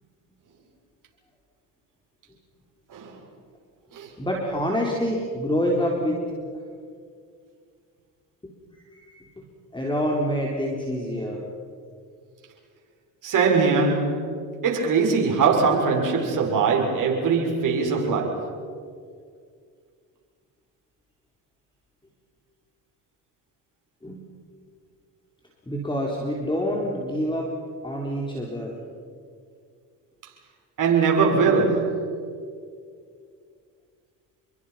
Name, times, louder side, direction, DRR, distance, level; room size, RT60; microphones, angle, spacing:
voice 1, 4.2-6.2 8.4-9.4 9.7-11.4 24.0-24.2 25.7-27.5 27.8-28.8, equal, 10° left, 4.2 m, -27 dB
voice 2, 13.2-14.3 14.6-18.5 30.8-32.1, right 5 dB, 55° right, 6.7 m, -21 dB
29.0 x 23.0 x 5.9 m
supercardioid pair, 80°, 39 cm